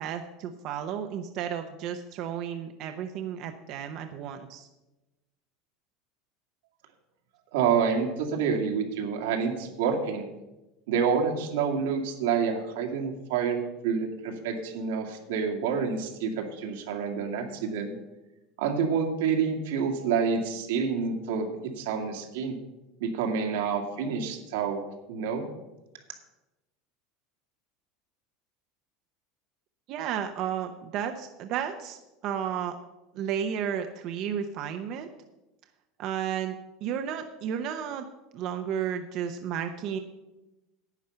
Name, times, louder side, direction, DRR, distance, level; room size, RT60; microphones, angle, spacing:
voice 1, 0.0-4.7 29.9-32.0 32.2-32.8 33.1-35.1 36.0-38.1 38.3-40.0, right 8 dB, 40° right, 6 dB, 0.7 m, -33 dB
voice 2, 7.5-10.3 10.9-17.9 18.6-21.5 21.8-22.6 23.0-24.8 25.1-25.4, right 6 dB, 85° right, 2 dB, 2.2 m, -28 dB
10.5 x 9.2 x 5.6 m, 1.0 s
supercardioid pair, 170°, 0 cm